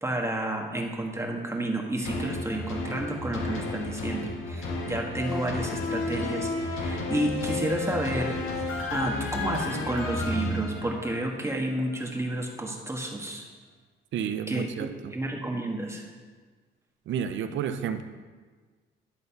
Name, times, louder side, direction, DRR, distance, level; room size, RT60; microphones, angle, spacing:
voice 1, 0.0-13.5 14.5-16.1, right 1 dB, 15° right, 1 dB, 1.5 m, -31 dB
Cheesy morning news tune, 2.0-11.4 11.9-12.0, left 2 dB, 90° left, 1.7 m, -32 dB
voice 2, 14.1-15.1 17.1-18.0, right 8 dB, 70° right, 10 dB, 0.7 m, -31 dB
11.5 x 4.1 x 6.9 m, 1.4 s
cardioid pair, 90°, 20 cm